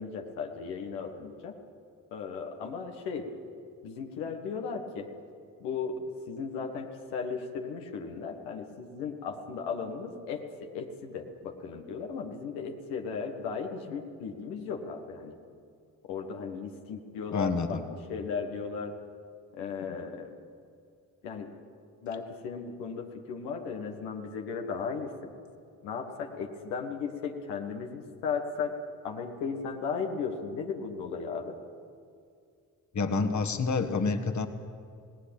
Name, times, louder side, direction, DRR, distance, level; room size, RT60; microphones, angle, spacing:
voice 1, 0.0-1.5 2.1-3.3 3.8-5.1 5.6-15.3 16.0-17.8 18.1-18.9 19.5-20.3 21.2-21.5 22.0-25.3 25.8-28.7 29.0-31.6, left 5 dB, 80° left, 3 dB, 1.7 m, -36 dB
voice 2, 17.3-17.8 32.9-34.5, left 4 dB, 45° left, 7 dB, 1.8 m, -28 dB
18.5 x 18.5 x 8.9 m, 2.3 s
hypercardioid pair, 40°, 40 cm